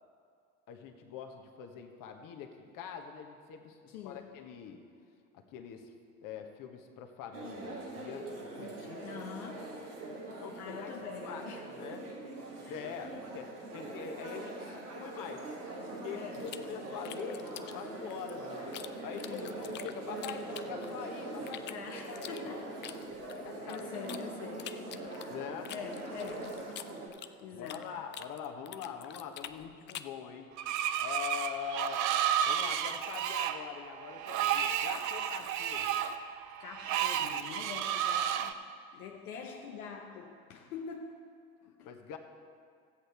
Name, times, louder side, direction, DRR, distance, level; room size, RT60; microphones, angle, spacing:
voice 1, 0.7-4.8 5.3-5.9 6.2-9.1 9.5-9.6 10.4-10.9 11.2-11.4 11.8-12.1 12.7-15.5 15.9-21.7 22.0-22.5 23.3-24.9 25.3-25.7 27.5-30.5 31.0-32.1 32.4-36.0 41.8-42.2, left 8 dB, 45° left, 1.2 m, -44 dB
voice 2, 3.9-4.3 9.0-9.8 10.6-11.6 12.6-12.8 13.1-13.2 16.1-16.5 19.1-19.6 21.7-22.8 23.7-24.8 25.7-26.7 27.4-28.0 36.6-38.6 38.9-41.2 41.6-41.9, left 6 dB, 70° left, 0.9 m, -45 dB
sound 1, 7.3-27.1, right 2 dB, 85° right, 1.8 m, -42 dB
sound 2, 16.5-18.9 19.2-21.1 21.5-24.2 24.6-27.9 28.1-30.2, left 12 dB, 25° left, 0.3 m, -46 dB
Screech, 30.6-38.5, right 10 dB, 40° right, 0.6 m, -32 dB
14.0 x 8.0 x 4.4 m
hypercardioid pair, 70°, 45 cm